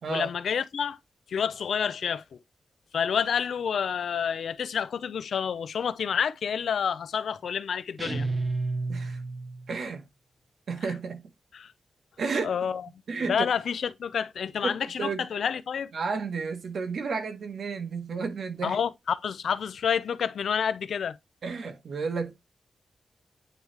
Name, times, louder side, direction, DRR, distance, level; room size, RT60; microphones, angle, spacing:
voice 1, 0.1-1.0 1.3-2.2 2.9-8.3 11.5-11.7 12.4-12.9 13.3-15.9 18.6-21.2, left 7 dB, 90° left, 0.5 m, -29 dB
sound 1, 8.0-9.7, right 3 dB, 30° right, 0.8 m, -31 dB
voice 2, 8.9-9.2 9.7-10.0 10.7-11.3 12.2-12.6 13.1-13.4 14.6-15.3 15.9-18.8 21.4-22.3, right 4 dB, 75° right, 1.2 m, -32 dB
9.3 x 3.1 x 3.3 m
wide cardioid pair, 150°, 0 cm